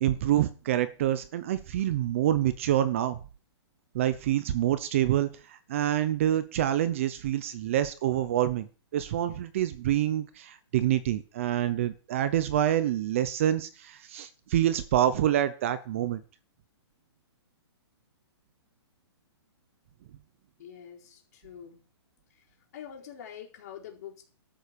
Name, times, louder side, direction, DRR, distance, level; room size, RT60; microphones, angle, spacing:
voice 1, 0.0-3.2 3.9-16.2, right 12 dB, 30° right, 13 dB, 0.7 m, -27 dB
voice 2, 20.6-21.8 22.7-24.2, left 9 dB, 35° left, -1 dB, 4.3 m, -45 dB
13.0 x 7.7 x 6.8 m, 0.38 s
hypercardioid pair, 175°, 14 cm